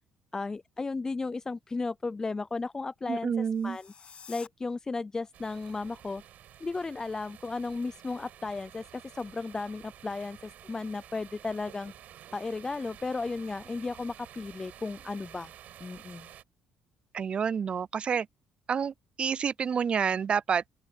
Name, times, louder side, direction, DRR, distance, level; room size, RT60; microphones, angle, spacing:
voice 1, 0.3-3.3 3.6-3.9 4.3-6.2 6.6-11.9 12.3-15.5 15.8-16.3, left 3 dB, 25° left, 0.5 m, -34 dB
voice 2, 3.1-3.8 17.1-18.3 18.7-20.7, right 7 dB, 40° right, 0.4 m, -29 dB
sound 1, 3.4-4.5, left 6 dB, 45° left, 2.5 m, -50 dB
sound 2, 5.3-16.4, right 11 dB, 65° right, 6.8 m, -51 dB
open air
cardioid pair, 90°, 3 cm